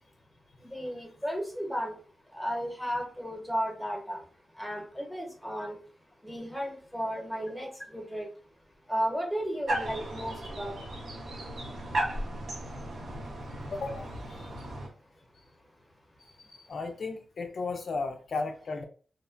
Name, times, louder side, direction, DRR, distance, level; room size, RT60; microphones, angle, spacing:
voice 1, 0.6-1.9 2.3-4.2 4.6-5.7 6.2-8.3 8.9-10.7, equal, ahead, 0.9 m, -34 dB
sound 1, 9.7-14.9, right 1 dB, 70° right, 0.9 m, -35 dB
voice 2, 13.7-14.5 16.4-18.8, left 3 dB, 60° left, 0.3 m, -35 dB
2.7 x 2.1 x 2.4 m
cardioid pair, 80°, 0 cm